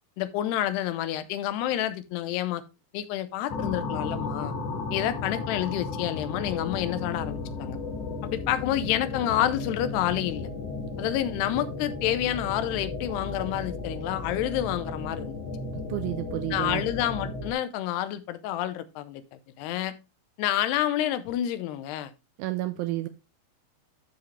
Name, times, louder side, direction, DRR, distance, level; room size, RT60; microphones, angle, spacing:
voice 1, 0.2-2.6 2.9-4.5 4.9-7.8 8.2-10.5 11.0-15.4 16.5-19.9 20.4-22.1, left 12 dB, 85° left, 2.8 m, -29 dB
sound 1, 3.5-17.5, left 3 dB, 60° left, 1.8 m, -34 dB
voice 2, 15.7-16.8 22.4-23.1, right 16 dB, 85° right, 2.1 m, -31 dB
12.5 x 4.9 x 3.2 m
omnidirectional pair, 4.6 m